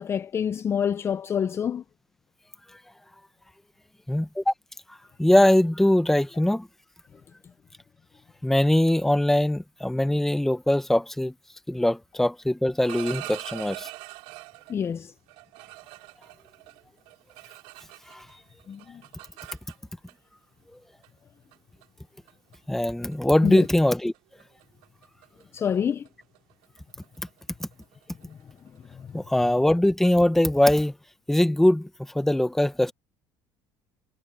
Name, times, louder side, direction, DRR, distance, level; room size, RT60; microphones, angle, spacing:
voice 1, 0.0-1.8 14.7-15.1 18.7-19.0 23.4-23.7 25.5-26.1 28.3-28.4 28.9-29.1, left 8 dB, 25° left, 0.6 m, -27 dB
voice 2, 4.1-4.5 5.2-6.7 8.4-11.3 11.7-13.9 18.1-18.3 22.7-24.1 27.6-27.7 29.1-30.9 31.3-31.9 32.1-32.9, left 1 dB, 5° left, 1.0 m, -22 dB
sound 1, 12.6-14.8 15.3-18.3 18.6-20.1 21.0-21.2 21.5-21.8 22.3-22.6 22.9-23.1 23.4-23.7 23.9-29.3, right 24 dB, 85° right, 6.4 m, -43 dB
cardioid pair, 145°, 10 cm